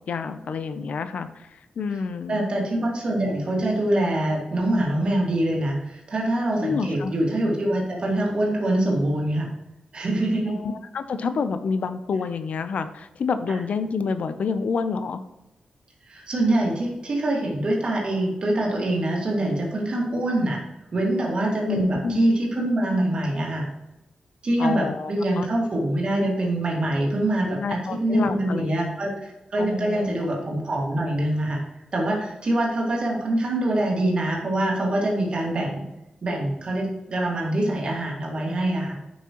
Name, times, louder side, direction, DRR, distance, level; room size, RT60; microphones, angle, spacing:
voice 1, 0.0-2.5 6.6-7.1 10.5-15.2 21.6-22.2 24.6-25.5 27.4-28.8 29.6-30.2, left 5 dB, 65° left, 10 dB, 0.5 m, -28 dB
voice 2, 2.3-9.5 9.9-10.6 16.1-20.6 20.9-23.7 24.4-31.6 31.9-35.9 36.2-39.0, right 1 dB, 40° right, -2 dB, 1.9 m, -24 dB
9.4 x 6.0 x 3.0 m, 0.93 s
wide cardioid pair, 175°, 3 cm